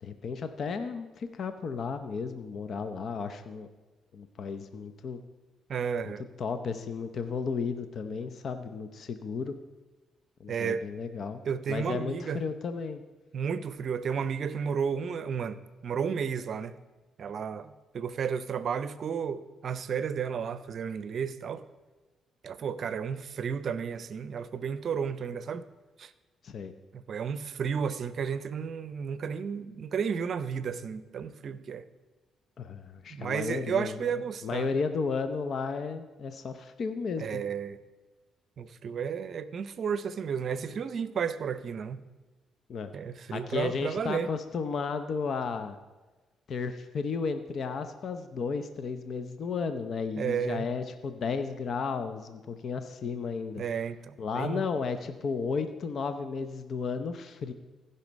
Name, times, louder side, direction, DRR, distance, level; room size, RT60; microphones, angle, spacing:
voice 1, 0.0-3.7 4.1-5.2 6.0-9.5 10.4-11.4 11.7-13.0 26.4-26.7 32.6-34.1 34.4-37.4 42.7-42.9 43.3-45.8 46.5-53.6 54.2-57.5, left 5 dB, 55° left, 0.6 m, -33 dB
voice 2, 5.7-6.2 10.5-10.8 11.5-12.4 13.3-16.7 17.2-21.6 22.4-25.6 26.0-26.1 26.9-31.8 33.1-34.7 37.2-37.8 38.6-42.0 42.9-44.3 50.2-50.7 53.6-54.7, right 7 dB, 55° right, 0.6 m, -32 dB
15.5 x 5.7 x 5.2 m
cardioid pair, 90°, 0 cm